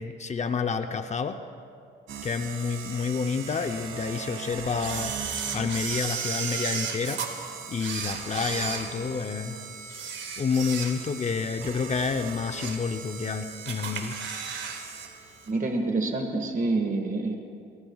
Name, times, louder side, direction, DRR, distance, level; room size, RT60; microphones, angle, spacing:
voice 1, 0.0-1.4 2.2-5.2 5.5-7.2 7.7-9.6 10.4-14.1, left 5 dB, 35° left, 7 dB, 0.7 m, -29 dB
sound 1, 2.1-15.5, right 6 dB, 85° right, 1.6 m, -41 dB
Camera, 4.8-7.3 7.8-9.4 9.8-11.2 11.6-11.8 12.3-12.9 13.2-13.3 13.7-14.8 15.1-15.2, right 6 dB, 65° right, 1.9 m, -34 dB
voice 2, 15.5-17.4, right 2 dB, 40° right, 4 dB, 1.8 m, -27 dB
23.5 x 22.5 x 2.4 m, 2.4 s
cardioid pair, 90°, 20 cm